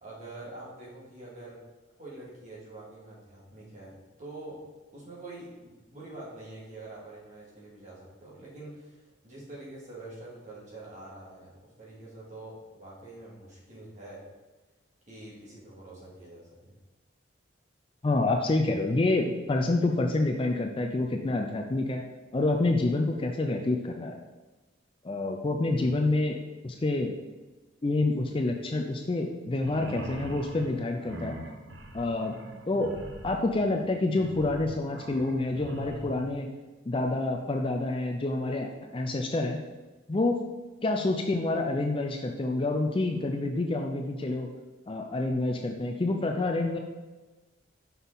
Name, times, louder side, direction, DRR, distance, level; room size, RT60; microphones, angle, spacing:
voice 1, 0.0-1.6 2.0-4.6 4.9-14.2 15.1-16.7 25.7-25.9, right 2 dB, 35° right, -6 dB, 2.2 m, -45 dB
voice 2, 18.0-22.0 22.3-24.2 25.0-27.2 27.8-31.4 31.9-32.4 32.7-32.9 33.2-36.5 36.9-39.6 40.1-40.4 40.8-44.5 44.9-46.8, left 2 dB, 25° left, 3 dB, 0.4 m, -28 dB
sound 1, 29.5-36.3, right 1 dB, 60° right, 0.9 m, -42 dB
6.1 x 5.5 x 3.9 m, 1.2 s
head